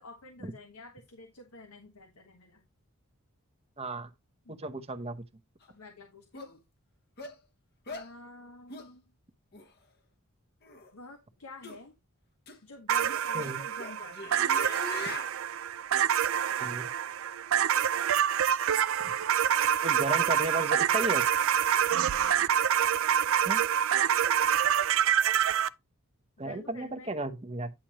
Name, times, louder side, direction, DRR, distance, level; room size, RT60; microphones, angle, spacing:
voice 1, 0.0-2.6 4.4-4.6 5.7-6.6 7.9-9.0 10.9-11.9 12.6-14.5 21.7-21.9 26.4-27.1, left 2 dB, 80° left, 1.4 m, -49 dB
voice 2, 3.8-4.1 4.5-5.3 13.3-13.6 16.6-16.9 19.0-19.1 19.8-21.3 23.4-23.6 26.4-27.7, right 1 dB, 25° right, 0.9 m, -34 dB
sound 1, 5.6-5.7 6.3-6.5 7.2-7.4 7.9-8.1 8.7-8.9 9.5-9.7 10.6-10.9 11.6-11.8 12.5-12.6 13.1-15.3, left 3 dB, 45° left, 1.2 m, -41 dB
sound 2, 12.9-25.7, right 9 dB, 65° right, 0.4 m, -26 dB
10.0 x 6.0 x 3.0 m
head